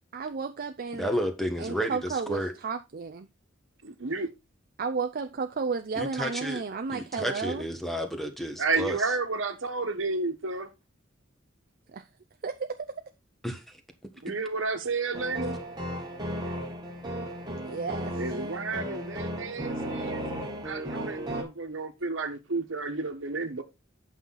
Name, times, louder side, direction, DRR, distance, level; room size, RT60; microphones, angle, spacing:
voice 1, 0.1-1.2 1.6-3.3 4.8-7.6 11.9-12.0 12.4-13.0 17.5-18.5, right 5 dB, 50° right, 0.5 m, -33 dB
voice 2, 0.9-2.5 6.0-6.6 6.9-9.0 13.4-13.8, equal, ahead, 1.3 m, -31 dB
voice 3, 3.8-4.3 8.6-10.7 14.2-15.6 18.1-20.3 20.6-23.6, right 3 dB, 70° right, 1.4 m, -31 dB
sound 1, 15.1-21.4, equal, 20° right, 1.6 m, -35 dB
8.6 x 5.7 x 3.9 m
head